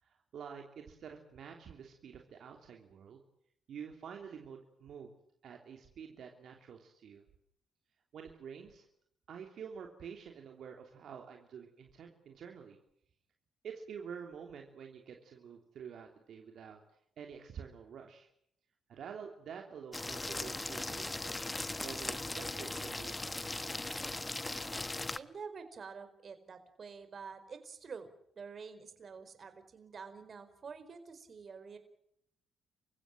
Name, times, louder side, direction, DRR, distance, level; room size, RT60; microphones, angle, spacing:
voice 1, 0.0-3.2 3.7-5.1 5.4-7.2 8.1-8.9 9.3-12.8 13.6-16.8 17.2-18.3 18.9-21.4 21.8-23.4, right 7 dB, 65° right, 2 dB, 3.1 m, -48 dB
sound 1, 19.9-25.2, left 2 dB, 15° left, 1.1 m, -39 dB
voice 2, 25.2-28.1 28.4-31.8, right 5 dB, 45° right, 9 dB, 4.7 m, -48 dB
28.0 x 16.0 x 9.1 m, 0.72 s
cardioid pair, 90°, 0 cm